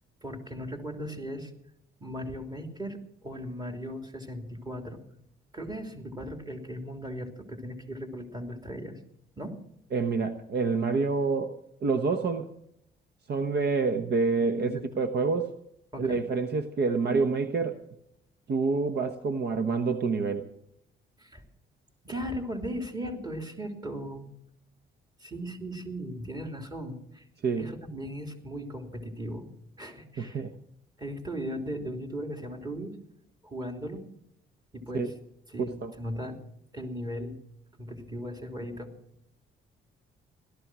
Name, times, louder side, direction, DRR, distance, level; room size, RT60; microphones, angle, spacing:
voice 1, 0.2-1.5 2.0-5.0 5.5-9.0 9.4-9.6 14.4-14.8 15.9-16.2 21.2-21.4 22.0-24.3 25.2-27.3 27.6-29.5 29.8-30.4 31.0-33.0 33.4-34.0 34.7-35.1 35.5-36.4 36.7-37.4 37.8-38.9, equal, 20° right, 4 dB, 3.1 m, -37 dB
voice 2, 9.9-11.5 11.8-12.5 13.3-15.5 16.0-17.8 18.5-20.5 27.4-27.7 30.2-30.5 34.9-35.1 35.6-35.9, right 4 dB, 55° right, 9 dB, 1.1 m, -27 dB
17.0 x 13.0 x 6.1 m, 0.75 s
cardioid pair, 90°, 20 cm